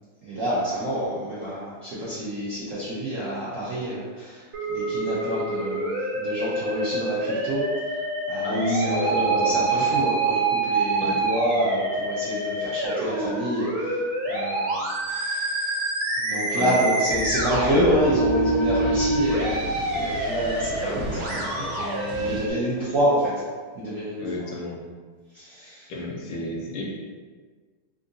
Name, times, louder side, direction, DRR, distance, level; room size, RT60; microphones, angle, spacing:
voice 1, 0.2-4.4 4.7-7.6 8.3-14.0 14.3-14.8 15.1-15.8 16.2-23.3 23.7-24.2 25.3-25.9, equal, 70° right, -10 dB, 0.7 m, -28 dB
Musical instrument, 4.5-22.5, right 2 dB, 85° right, 1.6 m, -26 dB
voice 2, 8.4-10.0 11.0-11.3 16.5-16.7 24.2-24.8 25.9-26.8, left 1 dB, 75° left, -2 dB, 1.2 m, -30 dB
sound 1, 17.1-22.4, left 1 dB, 45° right, 1.0 m, -35 dB
3.7 x 2.6 x 2.5 m, 1.5 s
omnidirectional pair, 2.3 m